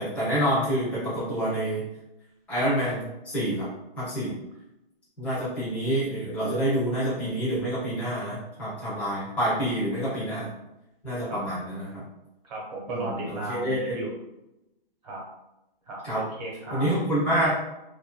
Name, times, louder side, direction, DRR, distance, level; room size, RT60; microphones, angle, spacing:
voice 1, 0.0-1.8 2.5-3.7 4.0-4.3 5.2-10.5 11.0-12.0 12.9-14.0 16.0-16.2 16.7-17.5, right 1 dB, 5° left, -12 dB, 0.5 m, -27 dB
voice 2, 12.4-14.1 15.0-15.2 15.9-16.9, right 2 dB, 45° right, -2 dB, 1.0 m, -35 dB
2.6 x 2.5 x 2.2 m, 0.91 s
hypercardioid pair, 165°, 30 cm